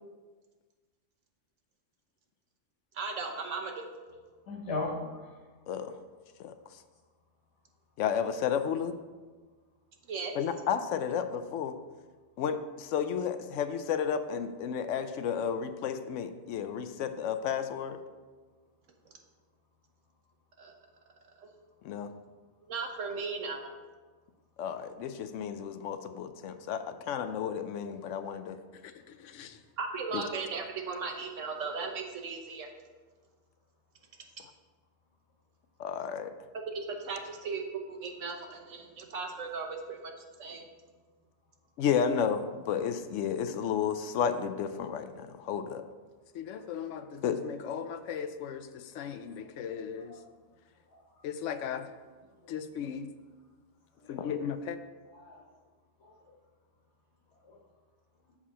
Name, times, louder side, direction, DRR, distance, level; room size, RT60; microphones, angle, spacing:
voice 1, 2.9-3.9 10.1-10.4 20.6-20.8 21.4-21.5 22.6-23.7 29.8-32.7 36.7-40.1 40.4-40.7, right 4 dB, 85° right, 3 dB, 1.3 m, -37 dB
voice 2, 4.5-5.3 5.9-6.0 50.1-50.2 50.9-51.0 52.5-52.6 54.0-54.2 55.1-55.4 56.0-56.1 57.4-57.6, left 3 dB, 65° left, -1 dB, 1.7 m, -38 dB
voice 3, 8.0-8.9 10.4-11.8 12.4-18.0 21.8-22.1 24.6-28.6 29.1-29.6 30.1-30.2 35.8-36.3 41.8-45.8 46.3-50.1 51.2-51.9 52.5-53.1 54.1-54.8, left 7 dB, 80° left, 9 dB, 0.9 m, -33 dB
7.0 x 4.9 x 5.5 m, 1.4 s
omnidirectional pair, 1.3 m